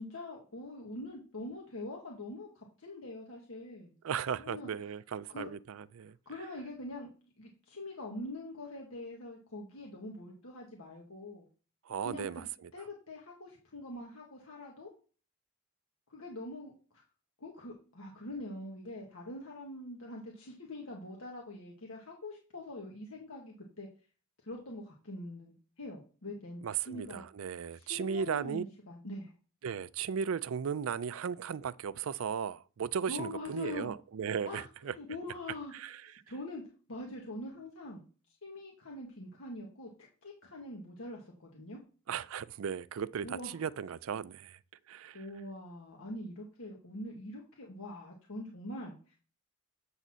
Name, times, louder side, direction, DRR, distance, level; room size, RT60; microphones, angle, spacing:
voice 1, 0.0-3.9 4.4-4.7 5.3-5.5 6.2-7.1 7.4-11.4 12.0-12.4 12.7-14.9 16.1-17.0 17.4-23.9 24.4-27.2 27.7-29.3 33.1-33.9 34.4-35.7 36.3-36.6 36.9-38.0 38.4-39.9 40.2-41.8 43.2-43.5 45.1-49.2, left 1 dB, 90° left, 1.5 m, -44 dB
voice 2, 4.0-6.2 11.9-12.7 26.6-28.6 29.6-34.9 35.7-36.1 42.1-44.6 44.9-45.3, right 7 dB, 70° right, 0.4 m, -36 dB
7.8 x 4.2 x 6.1 m
head